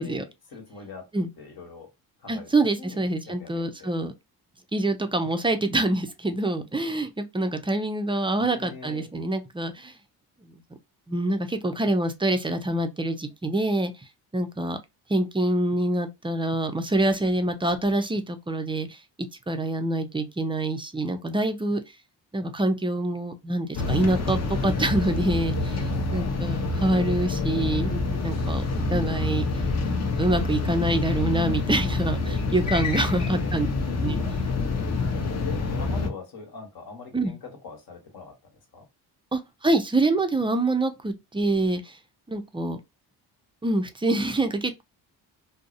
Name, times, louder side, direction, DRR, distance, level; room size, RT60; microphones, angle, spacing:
voice 1, 0.0-1.1 1.4-1.9 2.2-3.9 8.4-9.1 25.9-26.4 32.8-33.5 35.4-38.9, left 3 dB, 60° left, 1.2 m, -43 dB
voice 2, 2.3-4.1 4.7-9.9 11.1-13.9 14.3-14.8 15.1-18.9 19.5-21.8 22.3-27.9 28.2-28.6 28.9-29.4 30.2-33.7 34.0-34.2 37.1-37.3 39.3-41.9 42.3-42.8 43.6-44.8, right 2 dB, 15° right, 0.3 m, -26 dB
sound 1, 23.7-36.1, left 3 dB, 40° left, 0.6 m, -27 dB
2.6 x 2.0 x 2.5 m
cardioid pair, 75°, 41 cm